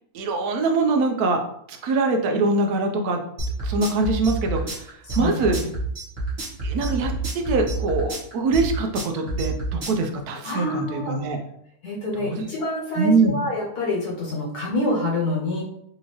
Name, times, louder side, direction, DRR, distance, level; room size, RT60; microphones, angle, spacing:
voice 1, 0.1-3.2 3.6-4.9 5.2-5.6 6.6-11.4 12.2-12.4 13.0-13.4, right 3 dB, 80° right, 3 dB, 1.1 m, -23 dB
sound 1, 3.4-10.0, right 1 dB, 45° right, 1.4 m, -28 dB
voice 2, 5.1-5.4 10.4-11.2 11.8-15.6, left 1 dB, 90° left, -4 dB, 1.7 m, -27 dB
4.1 x 2.7 x 2.9 m, 0.72 s
omnidirectional pair, 1.6 m